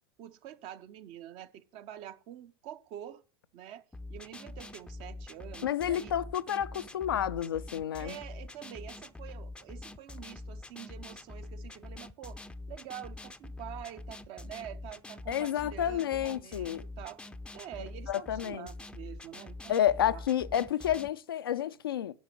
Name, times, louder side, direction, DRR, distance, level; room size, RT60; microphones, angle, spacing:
voice 1, 0.2-3.2 3.5-6.2 8.0-17.2 17.5-20.2, right 11 dB, 45° right, 0.8 m, -46 dB
sound 1, 3.9-21.1, left 2 dB, 5° left, 0.6 m, -45 dB
voice 2, 5.6-8.2 15.3-16.8 18.1-18.7 19.7-22.2, left 10 dB, 70° left, 0.5 m, -30 dB
10.5 x 5.7 x 7.5 m
figure-of-eight pair, 80°, 13 cm